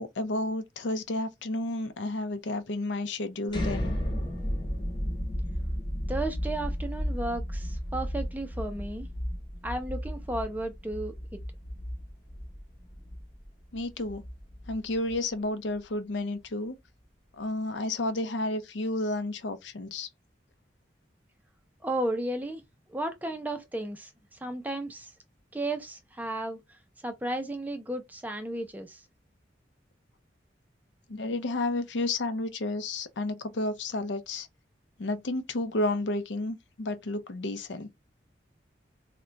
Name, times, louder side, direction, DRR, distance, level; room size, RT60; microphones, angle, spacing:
voice 1, 0.0-3.9 13.7-14.2 14.7-16.7 17.4-20.1 31.1-34.5 35.0-37.9, left 2 dB, 75° left, 0.5 m, -31 dB
sound 1, 3.5-15.3, equal, 25° left, 0.8 m, -34 dB
voice 2, 6.1-9.1 9.6-11.4 21.8-22.6 22.9-24.1 24.4-25.1 25.5-26.6 27.0-29.0, right 1 dB, 10° right, 0.4 m, -33 dB
2.3 x 2.2 x 3.8 m
head